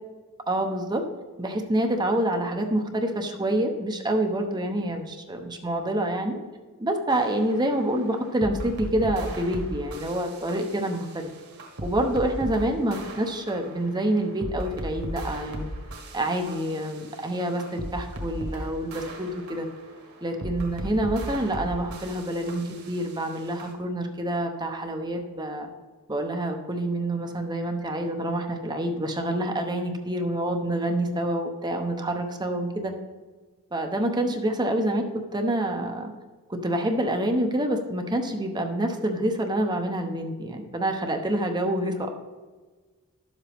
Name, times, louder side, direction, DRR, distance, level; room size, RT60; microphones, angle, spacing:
voice 1, 0.5-1.0 1.4-6.4 6.8-11.3 11.8-15.7 16.1-19.7 20.2-25.7 26.1-32.9 33.7-36.1 36.5-42.1, right 1 dB, 20° right, 4 dB, 0.8 m, -27 dB
sound 1, 7.1-23.7, equal, 85° right, 1.5 m, -38 dB
11.5 x 7.4 x 3.5 m, 1.3 s
head